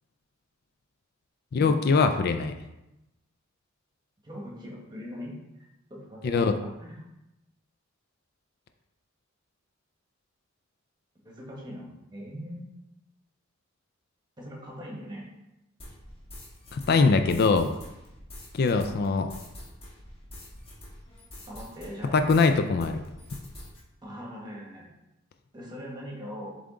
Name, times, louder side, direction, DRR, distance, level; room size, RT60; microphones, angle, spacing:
voice 1, 1.5-2.5 6.2-6.5 16.7-17.7 18.5-19.3 22.1-23.0, left 4 dB, 50° left, 8 dB, 0.4 m, -22 dB
voice 2, 4.2-5.6 5.9-7.0 11.2-12.7 14.4-15.2 18.8-19.0 21.5-22.4 24.0-24.9 25.5-26.6, equal, 20° right, -2 dB, 1.4 m, -41 dB
sound 1, 15.8-22.5 22.8-23.8, left 1 dB, 30° left, 1.5 m, -46 dB
7.3 x 3.5 x 3.7 m, 0.92 s
head